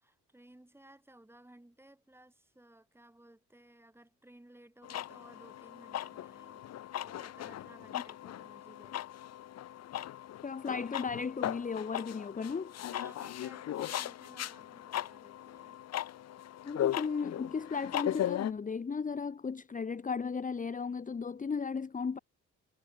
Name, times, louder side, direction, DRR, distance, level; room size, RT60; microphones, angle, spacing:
voice 1, 0.0-6.7 7.0-9.0 12.9-15.8, right 1 dB, 10° right, 6.6 m, -57 dB
sound 1, 4.8-18.5, left 12 dB, 60° left, 0.8 m, -38 dB
voice 2, 10.4-12.7 16.6-22.2, left 5 dB, 25° left, 1.1 m, -35 dB
cardioid pair, 90°, 30 cm